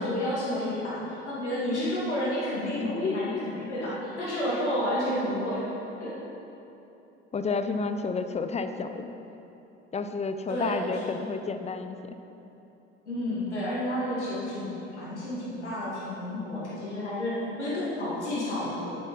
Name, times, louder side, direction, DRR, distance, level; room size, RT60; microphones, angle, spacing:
voice 1, 0.0-5.7 6.0-6.2 10.5-11.1 13.0-19.0, left 1 dB, 85° left, -8 dB, 2.4 m, -31 dB
voice 2, 2.7-3.5 3.8-3.9 7.3-9.1 9.9-12.2, left 4 dB, 20° left, 8 dB, 0.7 m, -31 dB
10.0 x 9.3 x 5.5 m, 2.9 s
figure-of-eight pair, 60°, 34 cm